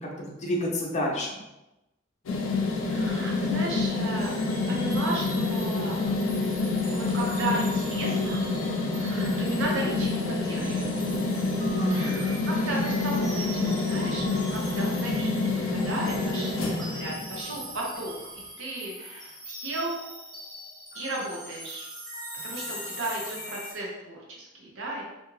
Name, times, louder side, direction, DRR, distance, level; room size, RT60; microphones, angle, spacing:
voice 1, 0.0-1.4 11.8-12.4, equal, 35° left, -1 dB, 0.6 m, -29 dB
sound 1, 2.3-17.6, left 3 dB, 90° left, 0.4 m, -27 dB
voice 2, 2.8-4.3 4.7-6.0 6.9-8.5 8.9-11.1 11.9-20.0 20.9-21.8 22.4-25.0, right 2 dB, 75° right, -2 dB, 0.7 m, -35 dB
sound 2, 4.2-23.7, right 1 dB, 20° right, 1.1 m, -42 dB
2.5 x 2.3 x 3.0 m, 0.97 s
head